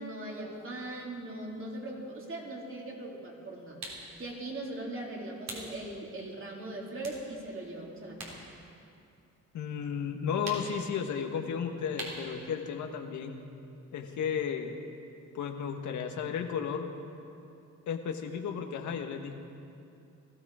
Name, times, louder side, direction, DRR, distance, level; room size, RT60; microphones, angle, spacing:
voice 1, 0.0-8.4, right 1 dB, 45° right, -2 dB, 3.5 m, -40 dB
sound 1, 3.8-4.1 5.4-5.7 6.2-6.3 7.0-8.4 8.7-9.8 10.4-10.8 12.0-12.3, right 2 dB, 60° right, 3.9 m, -42 dB
voice 2, 9.5-13.3 13.9-14.8 15.3-16.9 17.9-19.3, left 7 dB, 75° left, 4 dB, 1.4 m, -34 dB
20.0 x 14.5 x 4.9 m, 2.6 s
cardioid pair, 90°, 30 cm